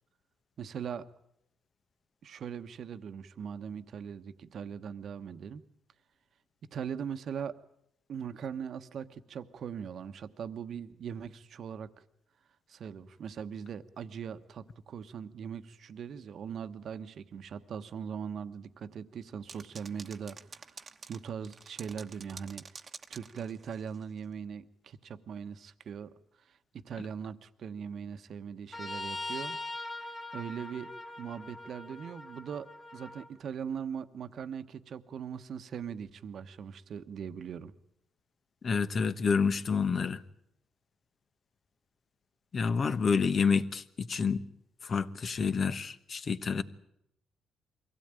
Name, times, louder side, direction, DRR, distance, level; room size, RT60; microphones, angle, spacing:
voice 1, 0.6-1.0 2.2-5.6 6.7-7.5 8.1-11.9 12.7-26.1 26.5-29.6 30.3-30.9 31.2-37.7, right 7 dB, 60° right, 1.1 m, -40 dB
sound 1, 19.5-24.0, right 5 dB, 35° right, 1.1 m, -49 dB
Trumpet, 28.7-33.3, left 2 dB, 20° left, 3.1 m, -41 dB
voice 2, 38.6-40.2 42.5-44.4 44.8-46.6, left 5 dB, 45° left, 1.1 m, -28 dB
23.0 x 16.5 x 9.0 m
cardioid pair, 90°, 0 cm